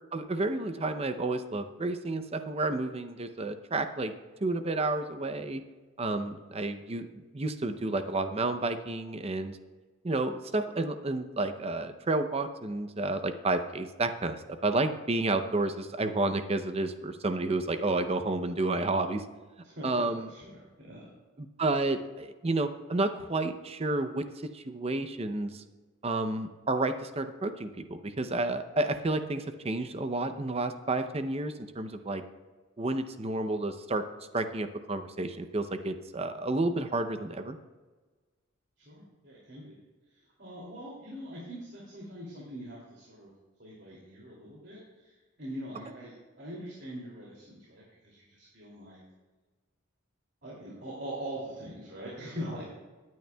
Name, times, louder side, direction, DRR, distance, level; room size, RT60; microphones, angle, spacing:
voice 1, 0.1-4.1 4.4-5.6 6.0-9.6 10.0-19.2 19.8-20.3 21.4-25.6 26.0-32.2 32.8-34.0 34.3-37.6, right 2 dB, 30° right, 9 dB, 0.6 m, -31 dB
voice 2, 19.6-21.1 36.5-36.9 38.8-39.8 40.1-43.3 43.6-49.0 50.4-52.7, equal, 55° right, -5 dB, 2.7 m, -43 dB
19.0 x 9.5 x 2.3 m, 1.3 s
head